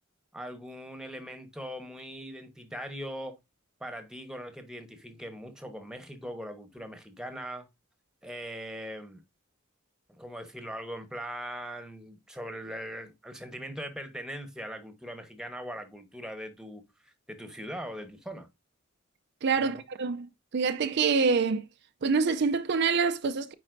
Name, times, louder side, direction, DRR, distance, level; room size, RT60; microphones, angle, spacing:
voice 1, 0.3-3.4 3.8-7.7 8.2-9.2 10.2-18.5 19.6-19.8, equal, 5° right, 1.1 m, -40 dB
voice 2, 19.4-20.3 20.5-21.6 22.0-23.5, right 5 dB, 55° right, 0.5 m, -26 dB
9.2 x 4.1 x 2.6 m
head